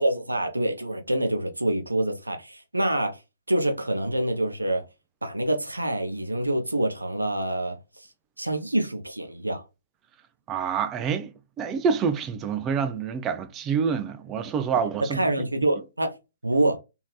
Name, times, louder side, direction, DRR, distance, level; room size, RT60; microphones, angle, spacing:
voice 1, 0.0-3.2 3.5-4.8 5.2-8.1 8.4-9.6 15.0-16.2 16.4-16.8, right 1 dB, 80° right, 0.6 m, -26 dB
voice 2, 10.5-15.5, right 6 dB, 20° right, 0.4 m, -27 dB
3.1 x 2.7 x 2.2 m
figure-of-eight pair, 125°, 0 cm